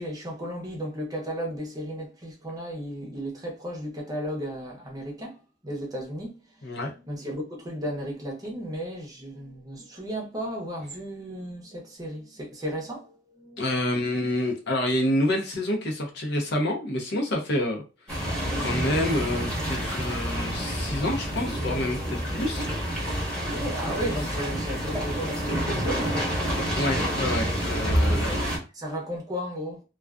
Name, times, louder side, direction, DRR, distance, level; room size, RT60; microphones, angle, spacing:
voice 1, 0.0-14.1 23.5-26.5 28.1-28.4 28.7-29.8, equal, 20° right, 0.7 m, -35 dB
voice 2, 13.6-22.7 26.7-28.4, left 1 dB, 65° left, 0.7 m, -28 dB
sound 1, 18.1-28.6, equal, 5° left, 1.1 m, -28 dB
2.4 x 2.3 x 2.3 m
head